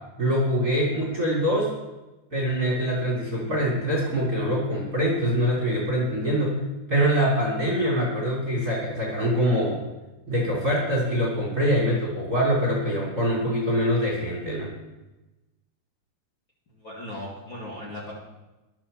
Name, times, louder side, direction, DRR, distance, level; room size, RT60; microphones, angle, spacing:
voice 1, 0.2-1.7 2.3-6.6 6.9-9.8 10.3-14.7, equal, 25° right, -2 dB, 2.7 m, -24 dB
voice 2, 16.8-18.1, left 1 dB, 35° left, -6 dB, 2.4 m, -37 dB
12.0 x 8.8 x 6.9 m, 1.1 s
omnidirectional pair, 5.3 m